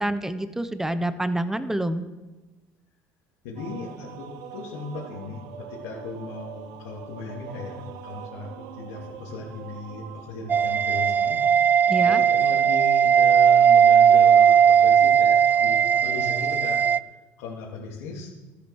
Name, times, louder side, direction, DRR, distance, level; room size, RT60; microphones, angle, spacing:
voice 1, 0.0-2.0 11.9-12.2, right 1 dB, 5° right, 12 dB, 1.0 m, -27 dB
voice 2, 3.4-11.7 12.0-16.8 17.4-18.3, left 4 dB, 85° left, -6 dB, 3.0 m, -37 dB
sound 1, 3.6-11.2, right 9 dB, 75° right, 1.0 m, -43 dB
sound 2, 10.5-17.0, right 8 dB, 25° right, 0.4 m, -18 dB
13.0 x 9.9 x 6.5 m, 1.2 s
supercardioid pair, 100°, 7 cm